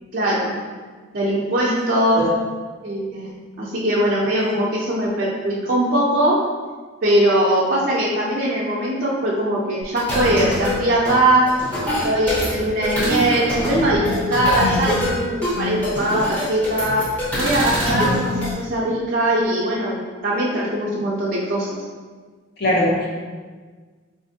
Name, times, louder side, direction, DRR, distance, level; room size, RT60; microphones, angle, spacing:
voice 1, 0.1-0.5 1.1-2.3 2.8-3.3 3.6-6.4 7.0-11.5 11.8-17.0 17.3-21.7, right 1 dB, 45° right, -6 dB, 0.4 m, -21 dB
sound 1, 9.8-18.5, left 1 dB, 5° left, 0.6 m, -24 dB
voice 2, 22.6-23.1, left 1 dB, 50° left, -4 dB, 0.8 m, -21 dB
4.1 x 2.5 x 2.7 m, 1.5 s
head